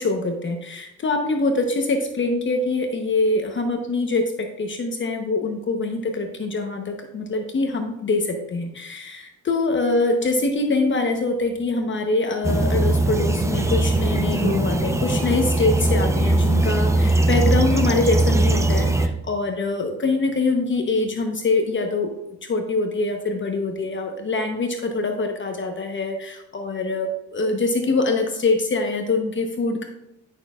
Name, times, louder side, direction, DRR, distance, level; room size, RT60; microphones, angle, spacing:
voice 1, 0.0-22.1 22.5-29.8, left 3 dB, 40° left, 4 dB, 1.0 m, -24 dB
sound 1, 12.4-19.1, right 2 dB, 10° right, 0.7 m, -20 dB
11.0 x 6.3 x 2.4 m, 0.89 s
cardioid pair, 90°, 30 cm